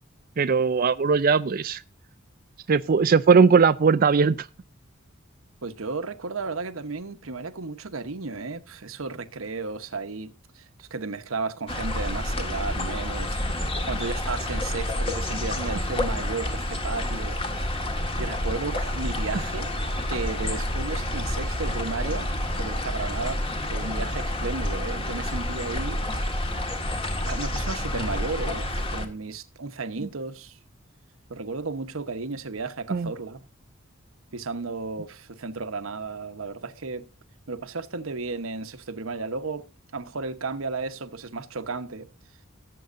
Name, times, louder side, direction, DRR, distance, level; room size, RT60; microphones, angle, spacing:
voice 1, 0.4-1.8 2.7-4.5 32.9-33.1, right 5 dB, 45° right, 0.4 m, -19 dB
voice 2, 5.6-13.4 13.9-17.7 18.1-19.7 20.1-22.3 22.6-26.3 27.3-30.6 31.3-33.4 34.3-37.1 37.5-39.6 39.9-42.1, right 4 dB, 85° right, 1.0 m, -34 dB
sound 1, 11.7-29.1, left 1 dB, 25° left, 1.7 m, -29 dB
18.5 x 7.8 x 2.6 m
head